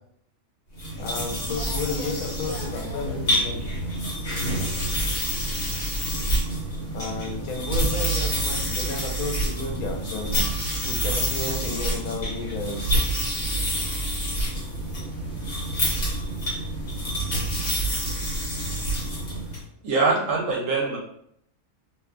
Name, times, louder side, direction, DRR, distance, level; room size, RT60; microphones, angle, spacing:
sound 1, 0.7-19.6, right 1 dB, 55° left, 1.2 m, -27 dB
voice 1, 1.0-3.7 6.9-10.5 10.8-12.9, left 3 dB, 85° left, 1 dB, 1.1 m, -32 dB
voice 2, 2.0-4.7, left 2 dB, 40° right, -6 dB, 0.8 m, -43 dB
voice 3, 19.8-21.0, right 3 dB, 70° right, -2 dB, 1.1 m, -23 dB
2.8 x 2.2 x 2.4 m, 0.70 s
omnidirectional pair, 1.5 m